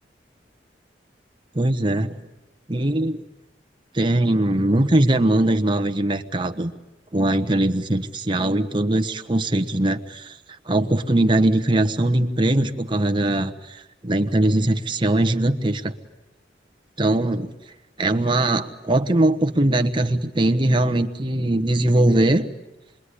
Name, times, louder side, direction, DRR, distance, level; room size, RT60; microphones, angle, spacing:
voice 1, 1.5-2.2 2.7-3.2 3.9-6.7 7.1-10.3 10.7-15.9 17.0-17.5 18.0-22.4, right 1 dB, 30° right, 7 dB, 1.2 m, -21 dB
27.0 x 22.0 x 9.9 m, 0.99 s
head